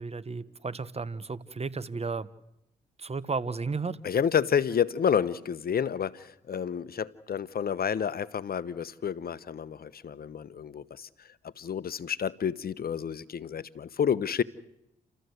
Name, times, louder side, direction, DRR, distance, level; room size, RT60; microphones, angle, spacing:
voice 1, 0.0-2.3 3.0-4.0, right 4 dB, 35° right, 1.3 m, -33 dB
voice 2, 4.0-14.4, left 7 dB, 55° left, 0.9 m, -30 dB
30.0 x 14.0 x 8.0 m
supercardioid pair, 50°, 19 cm